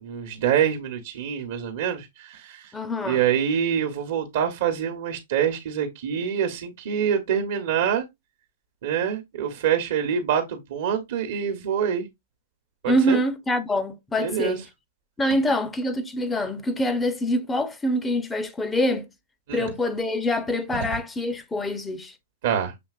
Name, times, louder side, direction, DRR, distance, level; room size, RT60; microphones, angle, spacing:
voice 1, 0.0-2.7 3.0-8.0 8.8-12.0 12.8-13.2 14.2-14.6 19.5-19.7 20.7-20.9 22.4-22.7, right 8 dB, 65° right, 1.0 m, -25 dB
voice 2, 2.7-3.2 12.8-14.6 15.2-19.0 19.5-22.1, equal, 10° left, 0.7 m, -25 dB
6.9 x 2.9 x 2.4 m
hypercardioid pair, 130°, 0 cm